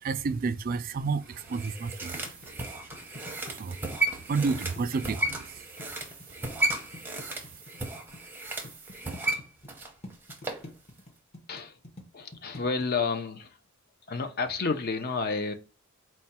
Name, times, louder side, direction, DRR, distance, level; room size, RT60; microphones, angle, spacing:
voice 1, 0.0-2.3 2.7-2.8 3.5-3.8 4.3-5.7, right 4 dB, 40° right, 0.3 m, -31 dB
sound 1, 1.3-10.7 11.0-11.1, right 2 dB, 10° right, 0.6 m, -34 dB
sound 2, 2.1-8.2 8.6-9.7 10.0-12.8, left 1 dB, 30° left, 0.9 m, -46 dB
voice 2, 12.1-13.6 14.1-15.5, left 4 dB, 45° left, 0.5 m, -30 dB
4.4 x 2.2 x 4.2 m
head